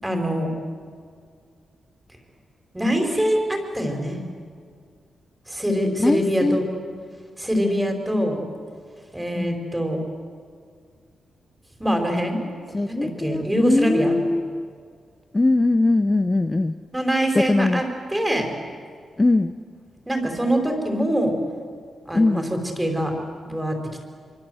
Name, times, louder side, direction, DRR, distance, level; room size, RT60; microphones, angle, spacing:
voice 1, 0.0-0.5 2.7-4.2 5.5-6.6 7.4-8.4 9.1-10.0 11.8-12.4 12.9-14.2 16.9-18.5 20.1-21.4 22.1-23.2 23.4-24.0, equal, 10° right, 3 dB, 4.8 m, -24 dB
voice 2, 6.0-6.6 9.3-9.7 12.7-14.7 15.3-16.8 17.3-17.8 19.2-19.5 22.1-22.5, left 2 dB, 20° left, 9 dB, 0.7 m, -21 dB
25.0 x 25.0 x 8.0 m, 2.1 s
cardioid pair, 95°, 0 cm